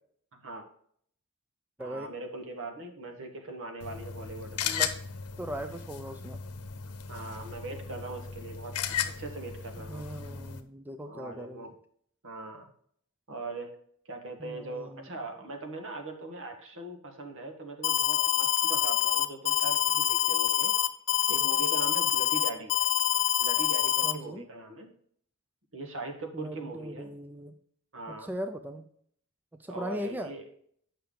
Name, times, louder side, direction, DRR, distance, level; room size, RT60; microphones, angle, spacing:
voice 1, 0.3-0.6 1.8-4.7 7.1-10.1 11.0-11.7 12.2-12.7 13.3-13.7 14.0-20.7 21.3-22.7 23.4-24.9 25.7-27.1 27.9-28.3 29.7-30.4, right 3 dB, 60° right, 4 dB, 1.4 m, -40 dB
voice 2, 1.8-2.1 4.6-5.0 5.4-6.4 9.9-11.7 14.4-15.0 24.0-24.5 26.3-27.5 28.2-28.9 29.6-30.3, equal, 10° right, 7 dB, 0.4 m, -39 dB
sound 1, 3.8-10.6, left 8 dB, 90° left, 0.8 m, -36 dB
Alarm, 17.8-24.1, left 12 dB, 55° left, 0.7 m, -26 dB
8.6 x 5.6 x 3.7 m, 0.63 s
head